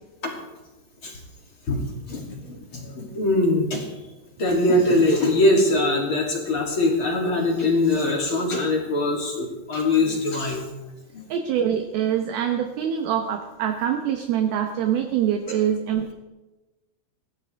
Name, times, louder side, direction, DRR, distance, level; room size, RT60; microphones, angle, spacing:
voice 1, 1.7-4.0 4.4-10.7 11.1-11.3, left 2 dB, 35° left, -1 dB, 2.9 m, -22 dB
voice 2, 11.3-16.1, right 9 dB, 70° right, 5 dB, 2.5 m, -24 dB
22.5 x 16.5 x 3.5 m, 1.1 s
omnidirectional pair, 5.1 m